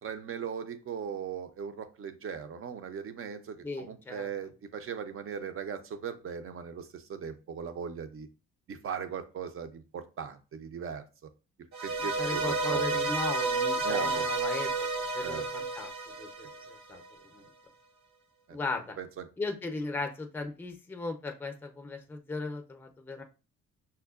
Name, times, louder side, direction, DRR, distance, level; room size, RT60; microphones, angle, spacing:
voice 1, 0.0-8.3 8.7-11.0 11.8-13.1 13.8-14.3 15.2-15.4 18.5-18.6 19.0-19.2, right 7 dB, 45° right, 10 dB, 0.6 m, -38 dB
voice 2, 3.6-4.3 12.0-15.9 16.2-17.0 17.3-17.4 18.5-19.0 19.4-23.2, left 3 dB, 5° left, 5 dB, 0.5 m, -37 dB
sound 1, 11.7-17.0, right 3 dB, 65° right, 0.9 m, -31 dB
5.5 x 2.1 x 2.4 m, 0.33 s
cardioid pair, 90°, 30 cm